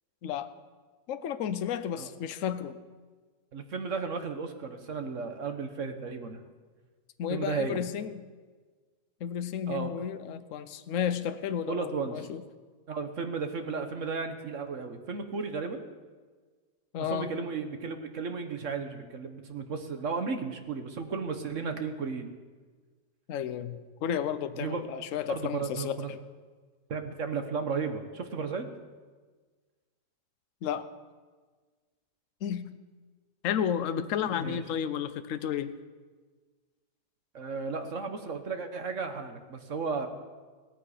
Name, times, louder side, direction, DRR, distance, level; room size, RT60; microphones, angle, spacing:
voice 1, 1.1-2.8 7.2-8.3 9.2-12.4 16.9-17.4 23.3-26.2 30.6-30.9 32.4-32.7 33.4-35.7, left 8 dB, 60° left, 11 dB, 1.0 m, -32 dB
voice 2, 3.5-6.4 7.3-7.8 9.7-9.9 11.7-12.2 12.9-15.8 17.1-22.3 24.6-24.8 25.3-26.1 26.9-28.7 34.4-34.6 37.3-40.1, right 5 dB, 50° right, 7 dB, 1.3 m, -34 dB
17.5 x 13.5 x 5.0 m, 1.4 s
omnidirectional pair, 1.8 m